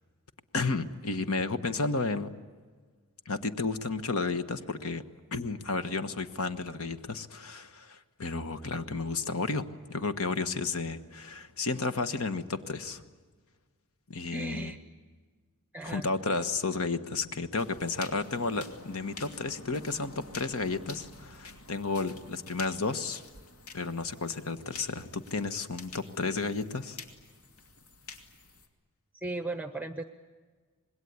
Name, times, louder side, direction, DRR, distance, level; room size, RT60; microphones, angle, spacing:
voice 1, 0.5-2.3 3.2-5.0 5.3-13.0 14.1-14.7 15.8-23.2 23.7-27.0, left 3 dB, 70° left, 10 dB, 1.3 m, -32 dB
voice 2, 14.3-14.8 15.7-16.1 29.1-30.0, right 2 dB, 5° right, 9 dB, 0.7 m, -36 dB
sound 1, 17.6-28.7, left 3 dB, 85° left, 2.6 m, -49 dB
26.0 x 21.0 x 9.6 m, 1.5 s
head